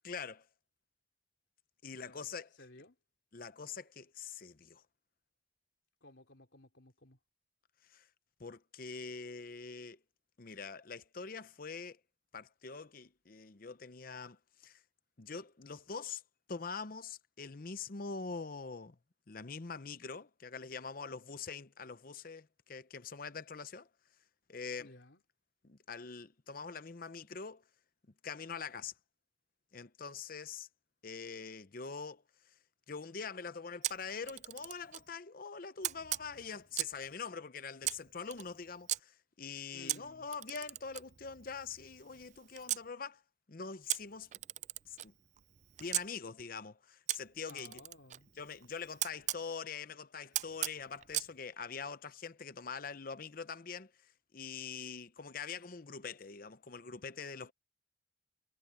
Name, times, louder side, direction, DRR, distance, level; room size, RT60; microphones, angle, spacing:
voice 1, 0.0-0.5 1.8-2.5 3.3-4.8 7.9-8.1 8.4-10.0 10.4-12.0 12.3-14.8 15.2-16.2 16.5-19.0 19.3-23.9 24.5-24.9 25.6-27.6 28.2-28.9 29.7-30.7 31.0-32.2 32.9-43.2 43.5-44.3 44.9-45.1 45.8-47.8 48.4-57.5, left 5 dB, 50° left, 0.7 m, -44 dB
voice 2, 2.0-3.0 6.0-7.2 24.8-25.2 39.7-40.3 47.5-48.3, left 2 dB, 70° left, 3.4 m, -57 dB
Camera, 33.8-35.1 35.8-37.1 37.8-39.0 39.9-42.9 43.9-46.1 47.1-49.4 50.3-51.3, right 14 dB, 40° right, 0.3 m, -39 dB
head